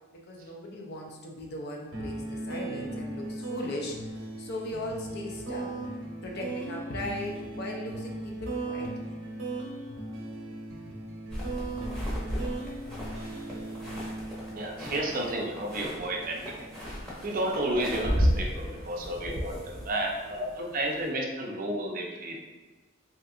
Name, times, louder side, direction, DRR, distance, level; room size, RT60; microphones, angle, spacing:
voice 1, 0.1-5.8 6.2-9.2 11.8-11.9, left 1 dB, 50° left, 0 dB, 0.5 m, -38 dB
sound 1, 1.9-17.0, right 2 dB, 90° right, 0.8 m, -38 dB
sound 2, 11.3-21.1, equal, 5° left, 0.8 m, -34 dB
voice 2, 14.5-16.5 17.2-22.4, right 1 dB, 40° right, 0 dB, 0.4 m, -32 dB
3.6 x 2.7 x 2.4 m, 1.3 s
head